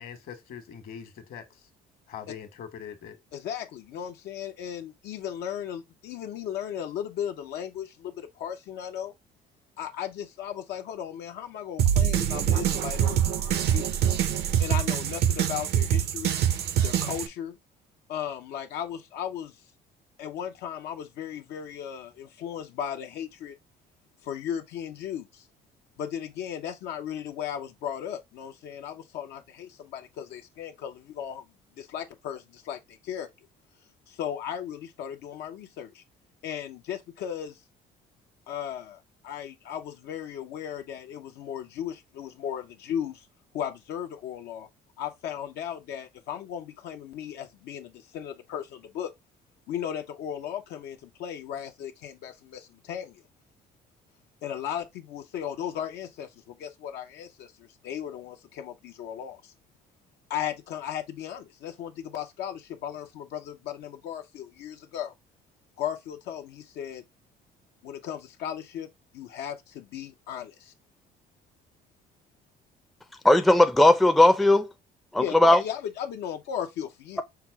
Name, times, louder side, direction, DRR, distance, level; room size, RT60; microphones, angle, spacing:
voice 1, 0.0-1.6 2.1-3.2, left 8 dB, 60° left, 1.3 m, -42 dB
voice 2, 3.3-9.1 9.8-13.9 14.6-16.4 16.8-17.6 18.1-19.6 20.2-23.5 24.2-25.5 26.0-31.4 31.8-33.3 34.1-36.0 36.4-37.6 38.5-43.3 43.5-44.7 45.0-49.1 49.7-53.2 54.4-59.5 60.3-65.1 65.8-67.0 67.8-70.7 75.2-77.2, left 9 dB, 80° left, 0.7 m, -36 dB
sound 1, 11.8-17.3, right 10 dB, 75° right, 0.7 m, -24 dB
voice 3, 73.2-74.7 75.1-75.6, left 1 dB, ahead, 0.4 m, -18 dB
5.8 x 2.0 x 4.5 m
cardioid pair, 110°, 17 cm